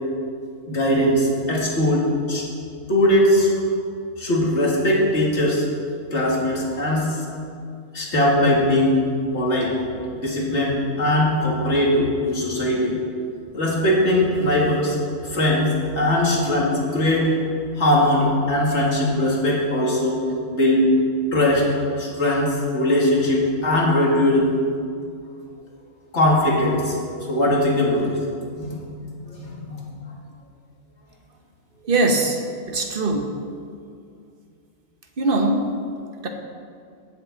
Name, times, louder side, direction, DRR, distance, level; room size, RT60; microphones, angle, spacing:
voice 1, 0.7-2.4 2.9-3.5 4.2-5.6 6.1-7.2 7.9-9.0 9.3-9.7 10.1-13.0 13.5-15.0 15.3-17.3 17.8-20.2 20.5-20.9 21.3-21.7 22.0-24.5 26.1-27.0 27.3-28.2 28.5-28.9 29.3-29.8, left 1 dB, 60° left, -3 dB, 2.3 m, -20 dB
voice 2, 31.8-32.4 32.7-33.3 35.2-35.7 36.2-36.3, right 2 dB, 45° right, 4 dB, 1.2 m, -21 dB
16.5 x 7.4 x 4.0 m, 2.3 s
omnidirectional pair, 1.4 m